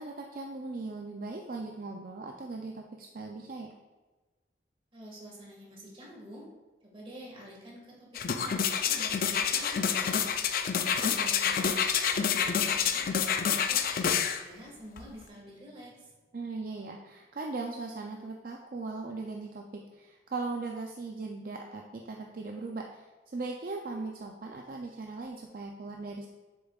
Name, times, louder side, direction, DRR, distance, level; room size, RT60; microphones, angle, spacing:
voice 1, 0.0-3.7 11.2-11.6 16.3-26.3, right 3 dB, 50° right, 1 dB, 0.5 m, -39 dB
voice 2, 4.9-6.5 6.8-10.3 10.8-11.6 12.1-13.8 14.3-16.1, equal, 30° right, -3 dB, 1.8 m, -48 dB
sound 1, 8.1-14.4 15.0-15.1, left 7 dB, 50° left, 0.4 m, -28 dB
7.4 x 6.9 x 2.4 m, 1.2 s
head